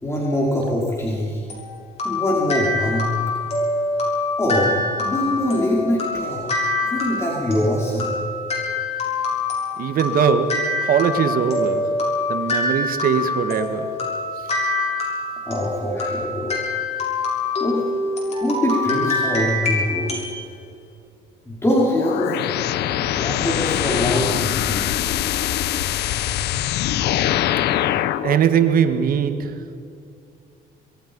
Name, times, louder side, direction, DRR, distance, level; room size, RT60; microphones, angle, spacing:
voice 1, 0.0-1.4 2.0-3.1 4.4-6.5 6.8-8.1 15.5-16.6 17.6-17.8 18.4-20.1 21.4-22.4 22.9-24.9, left 1 dB, 15° left, 4.9 m, -23 dB
sound 1, 1.5-20.4, left 2 dB, 40° left, 7.2 m, -25 dB
voice 2, 9.8-11.9 12.3-13.9 28.2-29.6, right 7 dB, 60° right, 1.7 m, -20 dB
sound 2, 22.0-28.4, left 12 dB, 80° left, 1.0 m, -23 dB
26.0 x 21.5 x 5.5 m
cardioid pair, 110°, 17 cm